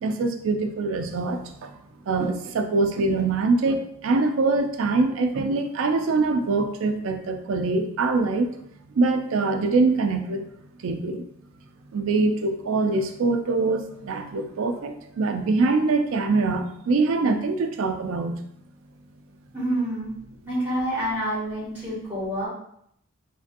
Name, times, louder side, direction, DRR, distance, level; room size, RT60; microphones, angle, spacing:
voice 1, 0.0-1.8 2.1-8.5 9.0-10.5 10.8-11.3 11.9-18.4, right 3 dB, 60° right, 6 dB, 0.3 m, -24 dB
voice 2, 19.5-20.1 20.4-22.5, right 1 dB, 10° right, -10 dB, 1.5 m, -27 dB
3.2 x 2.6 x 2.5 m, 0.72 s
head